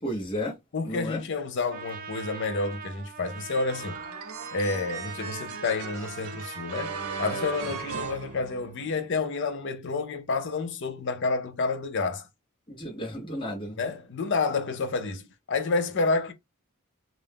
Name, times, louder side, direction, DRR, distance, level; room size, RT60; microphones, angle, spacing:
voice 1, 0.0-0.6 0.8-1.2 12.7-13.8, equal, 20° left, 1.0 m, -33 dB
voice 2, 0.7-4.0 4.5-12.3 13.8-16.3, left 3 dB, 55° left, 0.6 m, -29 dB
Trumpet, 1.7-8.2, right 5 dB, 40° right, 0.4 m, -42 dB
sound 1, 3.7-9.1, right 5 dB, 80° right, 0.6 m, -38 dB
2.5 x 2.1 x 3.4 m
head